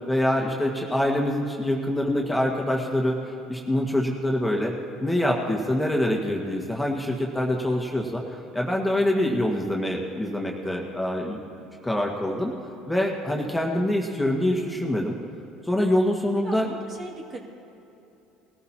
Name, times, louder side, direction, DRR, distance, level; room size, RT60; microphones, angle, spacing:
voice 1, 0.1-4.7 5.0-8.2 8.5-11.4 11.8-12.5 12.9-15.2 15.6-16.7, left 1 dB, 5° left, -1 dB, 1.8 m, -25 dB
voice 2, 16.4-17.4, right 1 dB, 45° right, -1 dB, 2.4 m, -39 dB
20.0 x 14.0 x 3.0 m, 2.9 s
hypercardioid pair, 75°, 0 cm